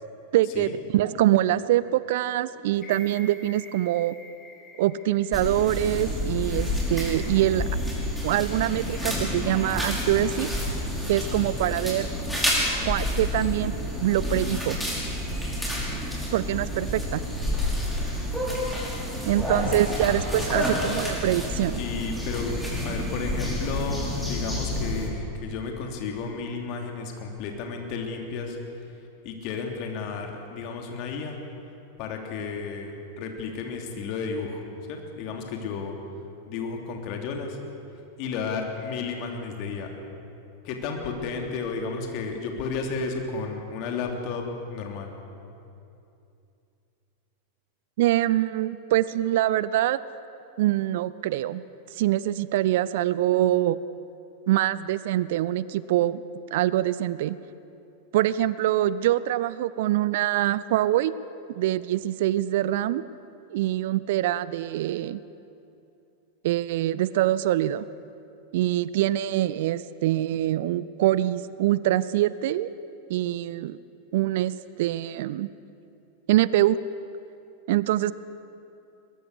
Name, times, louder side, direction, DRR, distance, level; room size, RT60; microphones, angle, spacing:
voice 1, 0.3-4.2 4.8-7.7 8.2-10.5 11.1-12.1 12.9-14.8 16.3-17.2 19.3-21.8 48.0-50.0 50.6-51.6 51.9-53.8 54.5-56.2 56.5-57.4 58.1-61.2 61.5-63.0 63.5-65.2 66.4-67.9 68.5-72.7 73.1-73.8 74.1-75.5 76.3-76.8 77.7-78.1, right 13 dB, 55° right, 18 dB, 0.5 m, -24 dB
sound 1, 2.7-6.9 7.3-7.4, left 1 dB, 25° left, 5.3 m, -48 dB
sound 2, 5.3-25.1, left 1 dB, ahead, 5.4 m, -29 dB
voice 2, 19.6-20.0 21.8-22.5 22.8-28.6 29.2-31.4 32.0-34.6 34.9-35.9 36.5-37.6 38.2-39.9 40.6-45.1, left 5 dB, 40° left, 2 dB, 3.1 m, -32 dB
22.5 x 21.0 x 6.7 m, 2.7 s
figure-of-eight pair, 90°, 0 cm